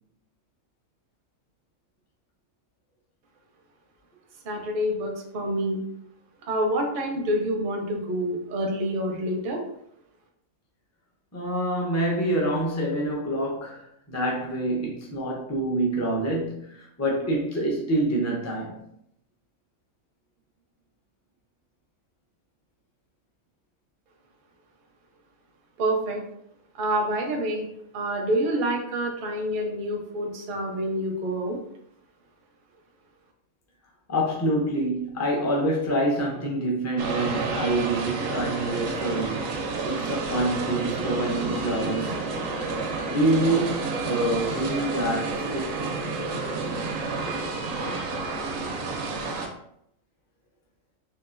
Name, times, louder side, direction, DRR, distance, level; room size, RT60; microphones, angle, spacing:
voice 1, 4.4-5.8 6.5-9.6 25.8-26.2 26.8-27.7 27.9-31.6, right 1 dB, 50° right, 0.6 m, -27 dB
voice 2, 11.3-18.9 34.1-42.2 43.1-45.8, right 1 dB, 25° left, 0.3 m, -26 dB
sound 1, 37.0-49.5, right 3 dB, 70° right, 0.9 m, -30 dB
3.8 x 2.4 x 2.5 m
omnidirectional pair, 1.5 m